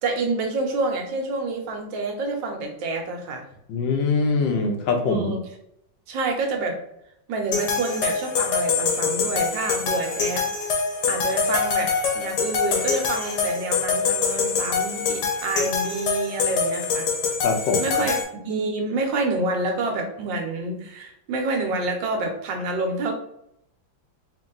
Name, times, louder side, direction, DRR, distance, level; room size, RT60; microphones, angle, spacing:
voice 1, 0.0-3.5 5.1-5.4 6.1-6.8 7.3-17.1 17.8-18.2 18.4-23.1, right 3 dB, 85° right, 3 dB, 1.6 m, -28 dB
voice 2, 3.7-5.3 17.4-17.8, left 4 dB, 90° left, 4 dB, 1.5 m, -23 dB
sound 1, 7.5-18.2, left 5 dB, 70° left, 1.4 m, -25 dB
4.1 x 2.7 x 3.8 m, 0.75 s
omnidirectional pair, 1.9 m